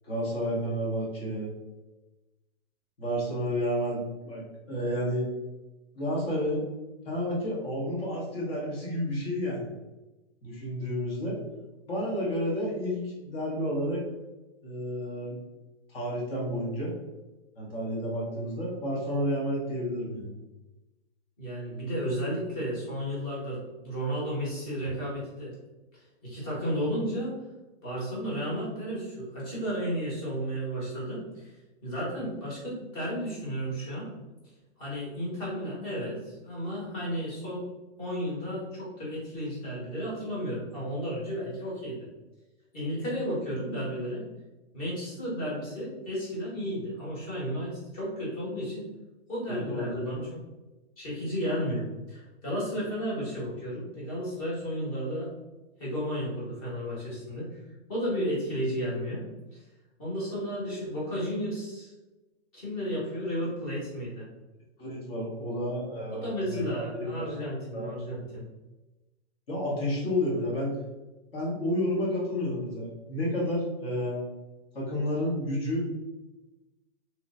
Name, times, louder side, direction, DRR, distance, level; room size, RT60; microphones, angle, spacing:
voice 1, 0.0-1.5 3.0-4.0 4.2-5.3 5.9-6.6 7.0-9.7 10.4-11.3 11.8-14.0 14.6-15.4 15.9-16.9 17.5-20.3 49.5-50.3 64.8-67.3 67.7-67.9 69.5-70.7 71.3-74.3 74.7-75.8, equal, 55° left, -5 dB, 1.5 m, -31 dB
voice 2, 21.4-25.5 26.2-27.3 27.8-31.5 31.8-34.1 34.8-37.7 38.0-42.0 42.7-44.2 44.7-48.9 49.3-50.3 51.0-55.3 55.8-57.5 57.9-59.2 59.5-59.6 60.0-61.9 62.5-64.3 66.1-68.4, equal, 30° left, -6 dB, 1.4 m, -33 dB
3.0 x 3.0 x 2.6 m, 1.1 s
hypercardioid pair, 180°, 34 cm